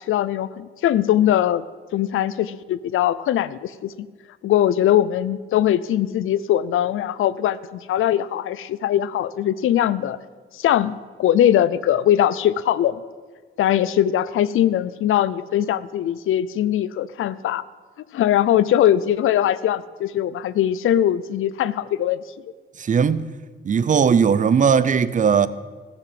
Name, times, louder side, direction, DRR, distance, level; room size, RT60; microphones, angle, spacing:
voice 1, 0.1-1.6 1.9-4.1 4.4-10.2 10.5-13.0 13.6-17.6 18.1-22.2, left 11 dB, 85° left, 0.6 m, -21 dB
voice 2, 22.8-23.3 23.6-25.5, right 6 dB, 40° right, 0.6 m, -18 dB
17.0 x 7.2 x 7.6 m
cardioid pair, 120°, 20 cm